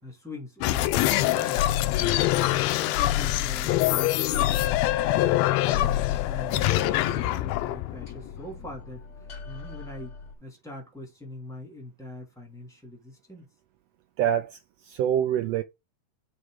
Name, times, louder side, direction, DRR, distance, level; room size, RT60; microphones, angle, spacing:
voice 1, 0.0-1.6 2.0-6.0 6.3-10.1 10.4-13.5, left 2 dB, ahead, 2.2 m, -42 dB
sound 1, 0.6-8.8, left 15 dB, 90° left, 1.5 m, -24 dB
sound 2, 4.2-10.3, left 4 dB, 70° left, 0.6 m, -43 dB
voice 2, 14.2-15.6, right 10 dB, 85° right, 1.4 m, -26 dB
6.7 x 4.6 x 4.8 m
omnidirectional pair, 3.6 m